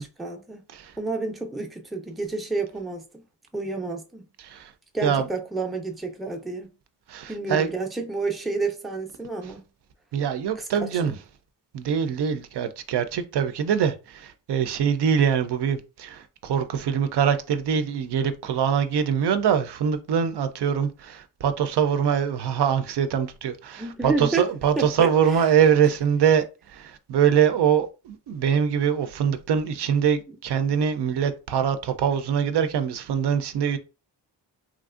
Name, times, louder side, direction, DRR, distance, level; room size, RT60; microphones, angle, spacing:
voice 1, 0.0-0.6 1.0-3.2 3.5-4.3 4.9-6.7 7.3-9.6 10.6-11.2 23.8-24.5 24.8-25.4 30.3-30.4, right 3 dB, ahead, 0.4 m, -30 dB
voice 2, 7.1-7.7 10.1-11.1 11.7-33.8, right 8 dB, 65° right, 0.5 m, -23 dB
3.1 x 2.5 x 2.4 m
wide cardioid pair, 105°, 43 cm